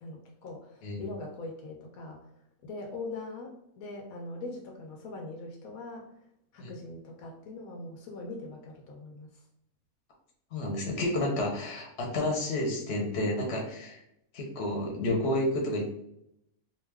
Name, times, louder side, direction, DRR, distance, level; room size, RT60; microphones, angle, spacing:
voice 1, 0.0-2.2 2.6-6.1 6.5-9.4, left 2 dB, 80° left, 1 dB, 1.0 m, -41 dB
voice 2, 10.5-14.0 14.3-15.9, left 1 dB, 55° left, 0 dB, 1.0 m, -30 dB
2.5 x 2.3 x 3.3 m, 0.77 s
omnidirectional pair, 1.5 m